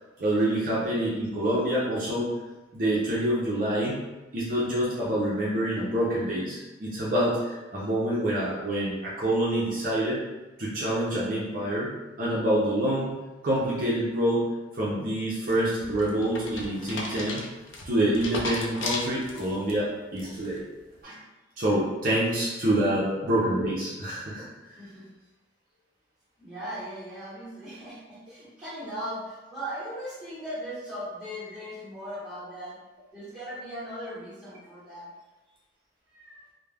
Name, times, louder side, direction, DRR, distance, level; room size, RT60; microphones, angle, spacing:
voice 1, 0.2-2.4 2.7-4.0 4.3-10.2 10.6-11.9 12.2-13.1 13.4-14.4 14.7-17.4 17.9-20.6 21.0-21.2 21.6-24.5, right 1 dB, 45° right, -6 dB, 0.5 m, -26 dB
sound 1, 15.5-19.7 20.2-20.6, left 2 dB, 80° left, 0.5 m, -35 dB
voice 2, 24.8-25.1 26.4-32.8 33.1-35.1 36.1-36.5, equal, 5° right, -11 dB, 1.0 m, -38 dB
2.3 x 2.1 x 3.2 m, 1.1 s
head